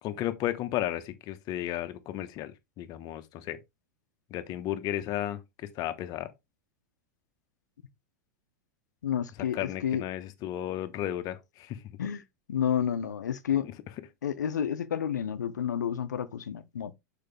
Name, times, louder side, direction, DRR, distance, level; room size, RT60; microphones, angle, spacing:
voice 1, 0.0-2.5 2.8-3.6 4.3-6.3 9.5-11.8, left 13 dB, 45° left, 1.1 m, -34 dB
voice 2, 9.0-10.0 12.0-12.2 12.5-13.7 14.2-16.9, left 9 dB, 90° left, 0.8 m, -30 dB
6.7 x 5.0 x 3.4 m
hypercardioid pair, 105°, 9 cm